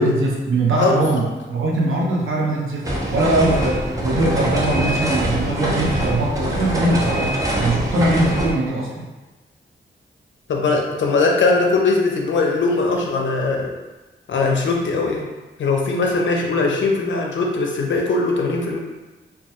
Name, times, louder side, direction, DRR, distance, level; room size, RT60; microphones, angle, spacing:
voice 1, 0.0-9.1, right 2 dB, 80° right, -3 dB, 0.6 m, -21 dB
sound 1, 2.8-8.5, right 1 dB, 15° right, 0.5 m, -23 dB
voice 2, 10.5-13.7 14.3-15.3 15.6-18.8, left 3 dB, 70° left, 0 dB, 0.4 m, -20 dB
2.2 x 2.2 x 2.7 m, 1.2 s
cardioid pair, 65°, 20 cm